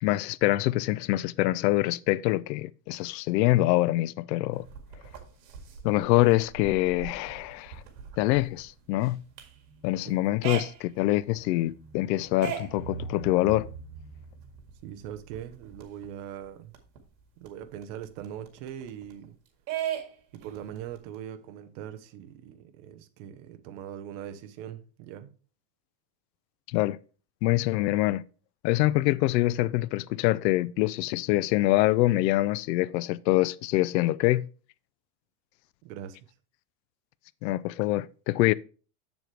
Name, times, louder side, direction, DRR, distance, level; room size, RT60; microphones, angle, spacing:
voice 1, 0.0-4.7 5.8-7.8 8.2-9.2 9.8-13.7 26.7-27.0 27.4-28.2 28.6-34.5 37.4-38.5, left 17 dB, 90° left, 0.6 m, -25 dB
sound 1, 4.5-16.1 16.4-16.5 16.7-19.3 19.7-21.2, right 8 dB, 80° right, 2.1 m, -40 dB
voice 2, 14.8-16.8 17.4-19.4 20.3-25.3 35.8-36.2, right 10 dB, 50° right, 0.9 m, -41 dB
7.6 x 7.1 x 3.3 m
supercardioid pair, 165°, 49 cm